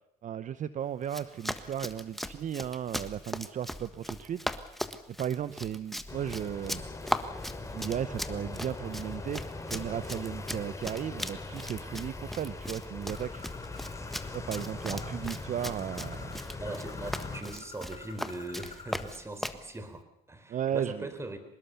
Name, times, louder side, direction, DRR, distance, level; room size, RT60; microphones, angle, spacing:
voice 1, 0.2-4.7 5.2-6.8 7.7-13.4 14.3-16.4 20.5-21.1, right 9 dB, 50° right, 14 dB, 0.9 m, -35 dB
Run, 1.0-19.6, equal, ahead, 1.4 m, -39 dB
sound 1, 6.1-17.4, left 3 dB, 20° left, 3.2 m, -41 dB
Bird, 13.1-19.2, left 4 dB, 35° left, 4.8 m, -50 dB
voice 2, 16.6-21.4, right 2 dB, 15° right, 10 dB, 3.9 m, -40 dB
24.5 x 20.5 x 6.9 m, 0.78 s
cardioid pair, 110°, 17 cm